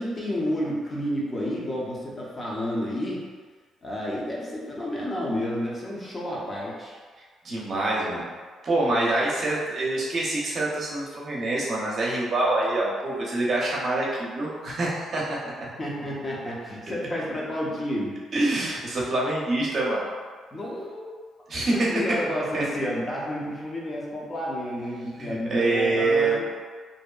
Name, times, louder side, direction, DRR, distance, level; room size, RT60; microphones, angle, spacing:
voice 1, 0.0-3.3 3.8-7.0 15.8-18.2 20.5-21.1 21.7-26.4, equal, 25° left, -5 dB, 0.6 m, -30 dB
voice 2, 7.4-8.3 8.6-15.5 16.9-17.0 18.3-20.0 21.5-21.9 22.5-22.7 25.2-26.4, right 2 dB, 50° right, -5 dB, 0.7 m, -25 dB
2.6 x 2.1 x 2.3 m, 1.5 s
cardioid pair, 90°, 0 cm